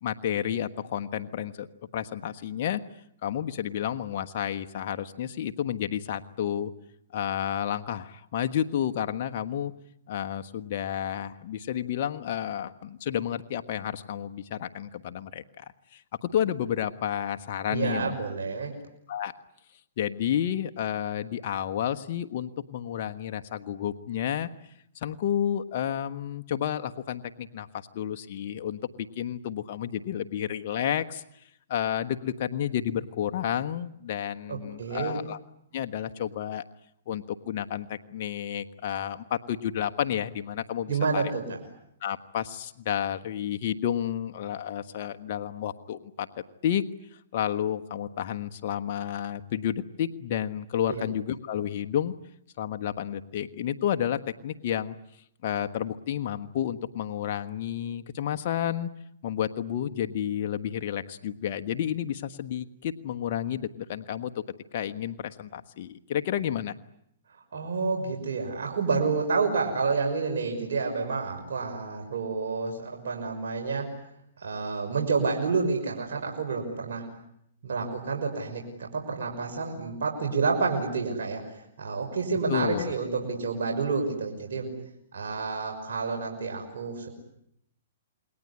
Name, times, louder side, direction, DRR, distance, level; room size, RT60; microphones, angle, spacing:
voice 1, 0.0-1.7 1.9-2.8 3.2-6.7 7.1-9.7 10.1-15.6 15.9-18.1 19.1-19.3 20.0-24.5 24.9-31.4 31.7-35.4 35.7-36.6 37.1-41.2 42.0-46.3 46.6-46.9 47.3-52.1 52.6-55.0 55.4-58.9 59.2-64.3 64.7-66.7 82.5-82.9, left 10 dB, 50° left, 7 dB, 1.4 m, -31 dB
voice 2, 17.7-18.8 34.5-35.2 40.9-41.6 50.9-51.0 67.5-73.9 74.4-77.1 77.6-84.7 85.1-87.1, right 4 dB, 75° right, 2 dB, 5.9 m, -29 dB
28.5 x 21.5 x 9.9 m, 0.75 s
hypercardioid pair, 135°, 0 cm